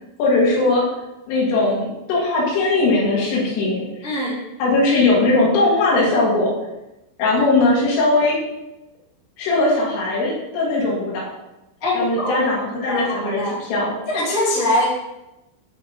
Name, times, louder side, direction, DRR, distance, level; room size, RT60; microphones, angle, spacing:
voice 1, 0.2-0.9 1.3-3.9 4.6-6.5 7.2-8.4 9.4-11.3 11.9-14.0, left 2 dB, 80° left, -5 dB, 4.3 m, -19 dB
voice 2, 4.0-4.4 11.8-12.5 12.8-13.6 14.1-14.8, left 1 dB, 35° left, -8 dB, 1.4 m, -22 dB
9.9 x 3.8 x 3.4 m, 0.95 s
omnidirectional pair, 5.7 m